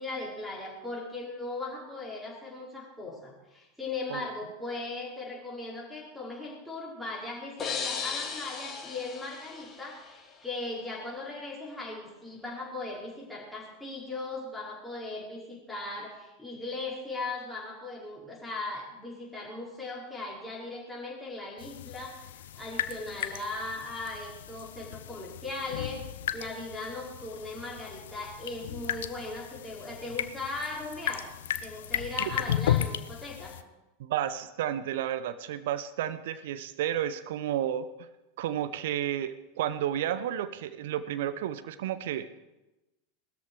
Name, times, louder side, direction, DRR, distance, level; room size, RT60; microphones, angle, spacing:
voice 1, 0.0-31.3 31.6-33.6, left 2 dB, 5° left, -5 dB, 5.2 m, -38 dB
sound 1, 7.6-10.4, left 6 dB, 25° left, 2.3 m, -36 dB
sound 2, 21.6-33.6, left 11 dB, 65° left, 0.6 m, -35 dB
voice 2, 34.0-38.1 38.4-42.3, right 11 dB, 60° right, 13 dB, 0.9 m, -32 dB
19.0 x 13.5 x 4.8 m, 1.0 s
figure-of-eight pair, 85°, 0 cm